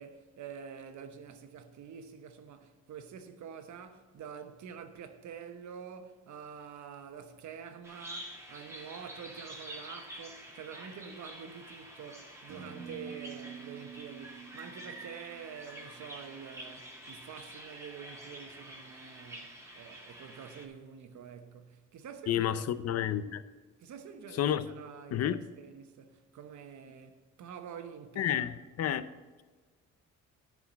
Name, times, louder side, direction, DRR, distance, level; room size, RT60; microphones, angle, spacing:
voice 1, 0.0-23.4 23.8-28.5, right 7 dB, 70° right, 1.1 m, -47 dB
Bird vocalization bird call bird song, 7.8-20.7, right 1 dB, 10° right, 2.1 m, -48 dB
sound 1, 12.5-16.3, right 7 dB, 85° right, 1.4 m, -48 dB
voice 2, 22.3-23.4 24.4-24.7 25.1-25.4 28.2-29.1, left 10 dB, 55° left, 0.6 m, -30 dB
10.0 x 4.9 x 7.3 m
cardioid pair, 90°, 30 cm